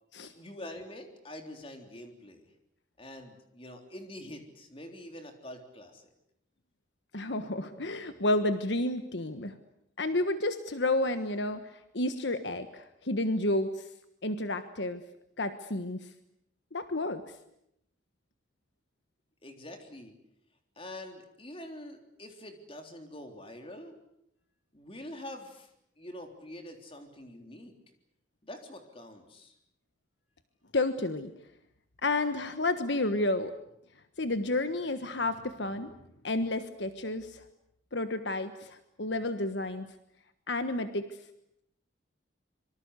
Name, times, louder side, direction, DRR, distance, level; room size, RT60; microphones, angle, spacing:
voice 1, 0.4-2.5 3.0-6.1 8.0-8.3 19.4-20.1 20.8-23.9 24.7-25.7 26.0-27.7 28.4-29.5, left 1 dB, 30° left, 5 dB, 3.7 m, -45 dB
voice 2, 7.1-9.6 10.0-13.9 14.2-15.0 15.4-16.1 16.7-17.2 30.7-31.3 32.0-33.5 34.2-35.9 36.2-37.4 37.9-39.9 40.5-41.2, left 2 dB, 65° left, 9 dB, 1.4 m, -31 dB
26.0 x 24.0 x 8.3 m, 0.78 s
head